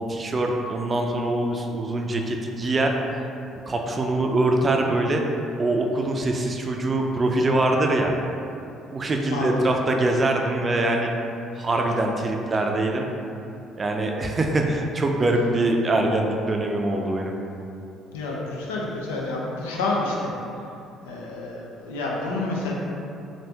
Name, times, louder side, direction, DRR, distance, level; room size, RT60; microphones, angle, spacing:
voice 1, 0.0-2.9 3.7-5.2 5.6-8.1 8.9-11.1 11.6-13.1 13.8-17.3, right 2 dB, 35° right, 2 dB, 0.4 m, -23 dB
voice 2, 9.3-9.7 11.6-11.7 18.1-20.3 21.1-22.7, left 2 dB, 85° left, -3 dB, 0.4 m, -29 dB
3.3 x 2.6 x 2.8 m, 2.7 s
hypercardioid pair, 60°, 0 cm